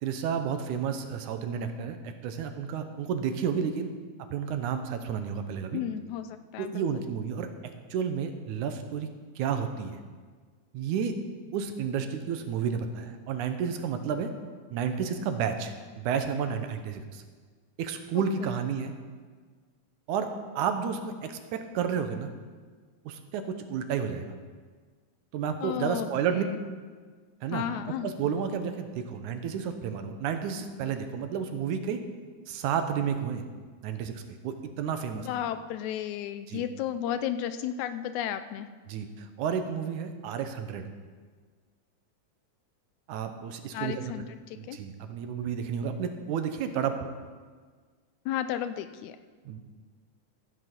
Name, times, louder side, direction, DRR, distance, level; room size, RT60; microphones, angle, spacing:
voice 1, 0.0-3.9 4.3-5.8 6.6-7.5 7.9-9.1 9.4-10.0 10.7-11.1 11.5-14.3 14.7-17.2 17.8-18.9 20.1-20.3 20.6-22.3 23.1-23.4 23.7-24.3 25.3-26.4 27.4-27.6 28.0-32.0 32.5-33.4 33.8-35.3 36.5-36.6 38.9-40.9 43.1-44.1 44.6-47.0 49.5-49.6, right 7 dB, 80° right, 7 dB, 2.3 m, -31 dB
voice 2, 5.7-6.9 18.2-18.3 25.6-26.6 27.5-28.1 35.1-38.7 43.7-44.8 48.3-49.2, left 10 dB, 80° left, 11 dB, 1.9 m, -33 dB
13.5 x 8.0 x 6.0 m, 1.5 s
omnidirectional pair, 3.5 m